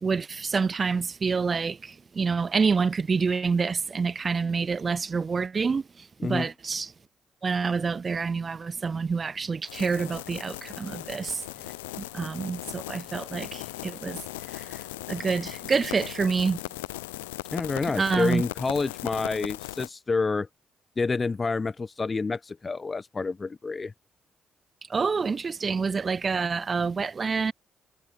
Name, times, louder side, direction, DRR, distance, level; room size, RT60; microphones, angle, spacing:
voice 1, 0.0-6.9 7.4-11.4 12.0-14.8 15.1-16.6 18.0-18.4 24.9-27.5, right 5 dB, 40° right, 0.3 m, -27 dB
sound 1, 9.7-19.9, left 20 dB, 85° left, 0.6 m, -38 dB
voice 2, 17.5-20.5 21.0-23.9, left 4 dB, 35° left, 0.9 m, -28 dB
hypercardioid pair, 45°, 0 cm